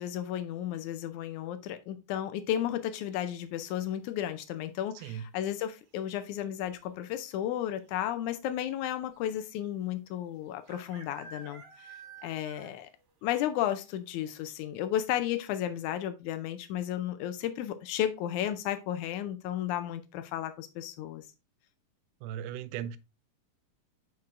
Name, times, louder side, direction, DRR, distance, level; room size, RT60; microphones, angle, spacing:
voice 1, 0.0-12.9 13.2-21.2, left 11 dB, 85° left, 1.7 m, -33 dB
sound 1, 3.1-3.6 5.4-5.8 6.1-6.2 6.4-6.9 7.7-7.8 8.0-8.1 9.6-9.7 10.7-13.0 13.3-13.4 13.9-14.0 14.4-14.5, right 5 dB, 55° right, 2.1 m, -50 dB
voice 2, 22.2-23.0, right 10 dB, 85° right, 2.3 m, -37 dB
7.3 x 6.0 x 2.5 m
omnidirectional pair, 4.1 m